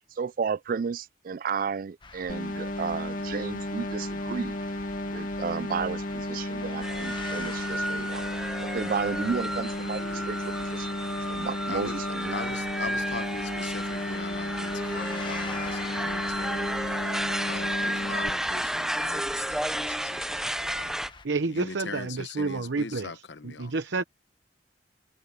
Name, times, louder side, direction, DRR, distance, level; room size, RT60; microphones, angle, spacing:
voice 1, 0.2-4.6 5.1-8.2 8.6-11.0 11.3-12.4, right 6 dB, 50° right, 0.4 m, -33 dB
sound 1, 2.0-21.3, left 4 dB, 25° left, 1.2 m, -46 dB
sound 2, 2.3-18.3, left 1 dB, 50° left, 1.2 m, -33 dB
sound 3, 6.8-21.1, right 1 dB, 5° right, 0.6 m, -32 dB
voice 2, 12.3-16.7 17.5-21.0 21.4-23.7, left 4 dB, 80° left, 1.1 m, -40 dB
voice 3, 21.2-23.1 23.4-24.0, right 3 dB, 90° right, 0.9 m, -29 dB
head